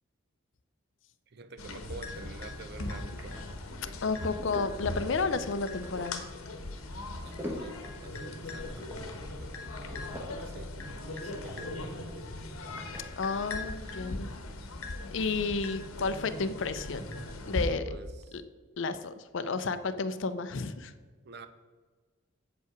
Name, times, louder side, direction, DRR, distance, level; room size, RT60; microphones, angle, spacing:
voice 1, 1.3-3.4 7.2-10.1 10.4-12.3 17.8-18.4 21.2-21.5, right 3 dB, 50° right, 11 dB, 0.5 m, -48 dB
sound 1, 1.6-17.7, left 2 dB, 85° left, 1.0 m, -39 dB
sound 2, 1.7-14.6, left 1 dB, 10° right, 1.0 m, -48 dB
voice 2, 4.0-6.2 13.2-14.3 15.1-17.1 17.5-17.8 18.3-18.4 18.8-20.9, left 4 dB, 60° left, 12 dB, 0.5 m, -31 dB
7.8 x 5.4 x 5.0 m, 1.4 s
head